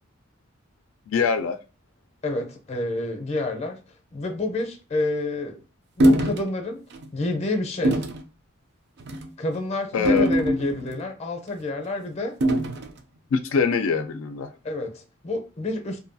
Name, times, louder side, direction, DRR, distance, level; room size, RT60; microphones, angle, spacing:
voice 1, 1.1-1.6 9.9-10.3 13.3-14.5, left 5 dB, 80° left, 0.3 m, -23 dB
voice 2, 2.2-3.8 4.1-5.6 6.0-6.8 7.1-8.0 9.4-12.4 14.6-16.0, left 2 dB, 30° left, 0.6 m, -29 dB
sound 1, 6.0-6.4 6.9-7.1 7.8-8.2 9.0-9.3 10.1-11.0 12.4-12.9, equal, 55° right, 0.4 m, -22 dB
2.6 x 2.3 x 2.6 m
head